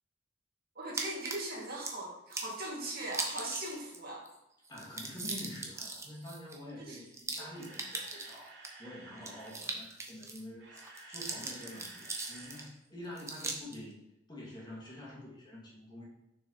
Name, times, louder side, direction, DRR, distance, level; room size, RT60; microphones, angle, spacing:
voice 1, 0.8-4.2 6.8-7.0, right 1 dB, 55° right, -3 dB, 2.3 m, -39 dB
sound 1, 1.0-1.9 2.3-2.6 3.1-4.0 4.2-4.3 4.6-8.7 9.2-10.4 10.8-12.7 13.2-13.8, right 3 dB, 15° right, 1.0 m, -40 dB
voice 2, 4.7-14.0 14.3-16.0, left 1 dB, 25° left, -5 dB, 2.4 m, -47 dB
Camera, 7.2-9.6 10.4-12.7 12.9-13.1 13.6-13.7, right 3 dB, 75° right, 2.4 m, -53 dB
6.9 x 6.1 x 4.1 m, 0.87 s
head